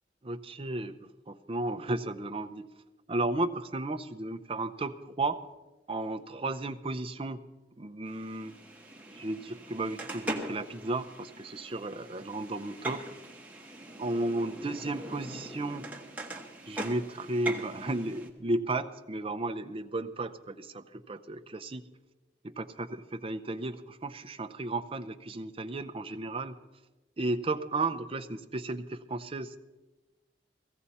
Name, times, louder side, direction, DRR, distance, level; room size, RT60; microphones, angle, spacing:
voice 1, 0.2-1.0 1.3-2.6 3.1-5.4 5.9-7.4 7.8-8.5 9.1-13.0 14.0-15.8 16.7-21.8 22.4-26.5 27.2-29.6, right 2 dB, 30° right, 9 dB, 0.6 m, -34 dB
sound 1, 8.1-18.3, right 1 dB, 10° right, 1.2 m, -41 dB
16.5 x 15.5 x 4.2 m, 1.1 s
head